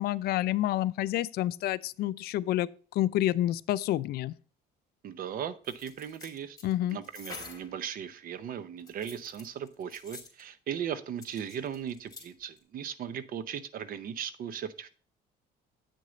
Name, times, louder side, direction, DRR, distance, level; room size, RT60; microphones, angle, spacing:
voice 1, 0.0-2.7 3.0-4.3 6.6-7.0, left 14 dB, 70° left, 0.4 m, -28 dB
voice 2, 5.0-6.6 6.9-14.9, right 8 dB, 55° right, 0.7 m, -37 dB
sound 1, 5.6-7.7 8.8-10.4 11.2-12.2 12.6-12.7, left 4 dB, 20° left, 2.4 m, -47 dB
8.5 x 6.4 x 3.9 m
cardioid pair, 110°, 17 cm